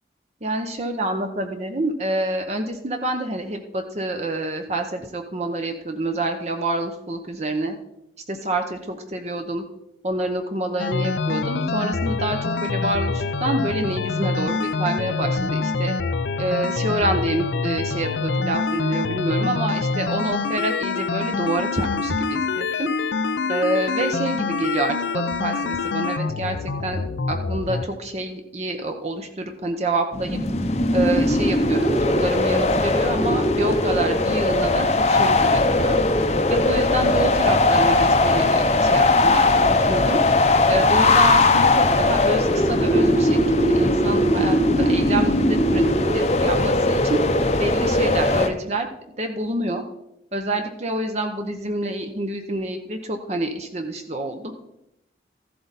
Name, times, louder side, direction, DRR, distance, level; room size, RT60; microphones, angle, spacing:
voice 1, 0.4-7.7 8.3-9.6 10.0-15.9 16.4-22.9 23.5-27.0 27.3-30.4 30.9-36.0 36.5-40.2 40.7-45.8 46.1-47.2 47.6-48.9 49.2-49.8 50.3-54.5, right 1 dB, 35° right, 5 dB, 0.8 m, -27 dB
sound 1, 10.8-27.9, left 4 dB, 75° left, 0.5 m, -25 dB
sound 2, 30.1-48.5, left 2 dB, 35° left, 0.7 m, -19 dB
14.0 x 7.8 x 4.0 m, 0.85 s
head